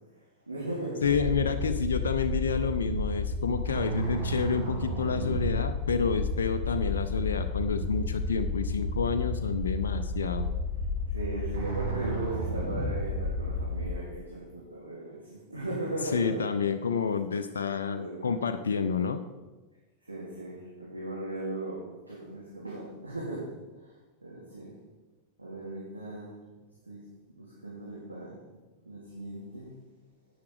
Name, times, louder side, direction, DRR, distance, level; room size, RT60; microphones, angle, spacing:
voice 1, 0.5-1.1 3.9-4.3 11.1-16.5 18.0-18.4 20.0-23.5 23.8-23.9 24.2-24.7 25.4-26.3 26.9-27.0 27.3-28.4 28.8-29.7, right 2 dB, 80° right, -6 dB, 2.7 m, -37 dB
voice 2, 1.0-10.5 16.1-19.2, left 6 dB, 65° left, 6 dB, 0.6 m, -29 dB
sound 1, 1.0-13.9, left 1 dB, 50° right, 3.5 m, -31 dB
10.5 x 8.8 x 4.9 m, 1.2 s
figure-of-eight pair, 90°, 0 cm